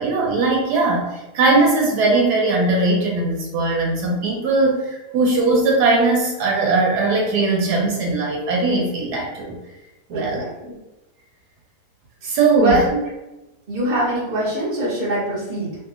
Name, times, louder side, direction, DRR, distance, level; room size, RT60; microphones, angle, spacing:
voice 1, 0.0-9.6 10.1-10.4 12.2-12.9, right 3 dB, 80° right, -1 dB, 1.1 m, -19 dB
voice 2, 10.1-10.8 12.2-13.0 13.7-15.8, right 1 dB, 55° right, -6 dB, 0.4 m, -23 dB
2.7 x 2.6 x 2.4 m, 1.0 s
omnidirectional pair, 1.7 m